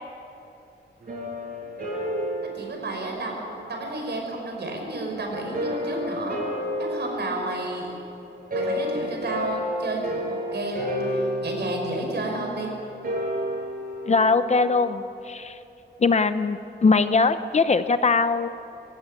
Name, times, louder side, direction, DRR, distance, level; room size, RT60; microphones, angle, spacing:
sound 1, 1.0-4.0 5.3-14.5, equal, 50° right, 7.2 m, -31 dB
voice 1, 2.5-6.4 6.8-7.9 8.5-12.7, right 2 dB, 70° right, 1 dB, 5.5 m, -31 dB
voice 2, 14.1-15.6 16.0-18.5, left 4 dB, 40° left, 11 dB, 0.7 m, -21 dB
20.5 x 17.0 x 9.7 m, 2.7 s
wide cardioid pair, 175°, 18 cm